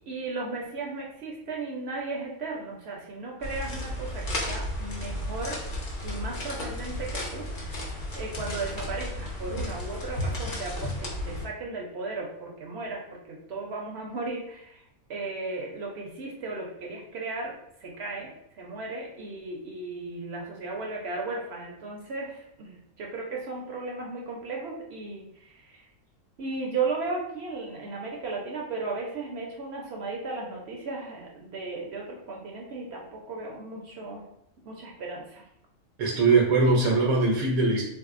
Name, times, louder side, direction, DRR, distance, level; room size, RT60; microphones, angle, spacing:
voice 1, 0.1-5.7 6.0-17.5 17.8-25.9 26.4-34.2 34.6-35.5, right 3 dB, 60° right, -1 dB, 0.7 m, -35 dB
sound 1, 3.4-11.5, left 1 dB, 45° left, 0.7 m, -33 dB
voice 2, 36.0-37.8, right 3 dB, 80° right, -1 dB, 1.1 m, -21 dB
3.5 x 2.6 x 2.4 m, 0.77 s
omnidirectional pair, 1.5 m